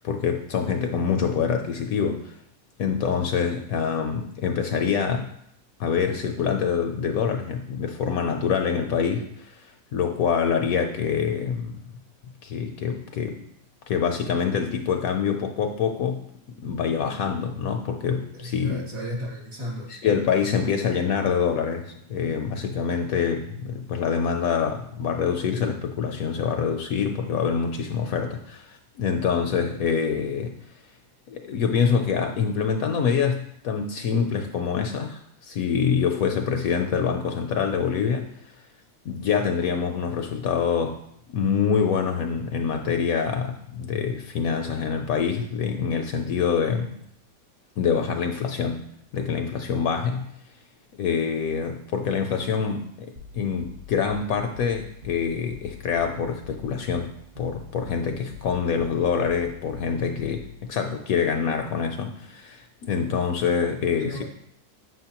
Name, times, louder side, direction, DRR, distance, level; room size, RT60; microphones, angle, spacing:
voice 1, 0.0-2.3 2.8-5.3 5.8-11.8 12.4-13.4 13.9-16.2 16.6-18.8 19.9-30.6 31.3-38.3 39.1-41.0 41.3-46.9 47.8-48.8 49.1-50.3 50.9-64.2, left 6 dB, 70° left, 5 dB, 0.9 m, -25 dB
voice 2, 18.3-19.9 64.0-64.2, equal, 55° right, -3 dB, 2.4 m, -34 dB
sound 1, 53.2-60.7, left 5 dB, 40° right, 1.1 m, -44 dB
7.5 x 6.1 x 2.9 m, 0.71 s
omnidirectional pair, 1.8 m